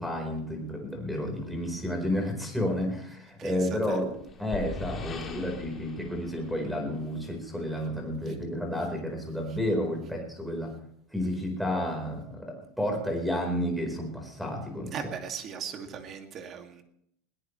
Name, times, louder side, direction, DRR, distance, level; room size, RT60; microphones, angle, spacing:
voice 1, 0.0-10.7 11.1-15.1, left 1 dB, ahead, 2 dB, 4.6 m, -31 dB
sound 1, 3.7-7.4, left 3 dB, 25° left, 2.8 m, -41 dB
voice 2, 14.9-16.8, right 7 dB, 35° right, 4 dB, 2.4 m, -38 dB
21.5 x 17.5 x 3.3 m, 0.73 s
supercardioid pair, 155°, 0 cm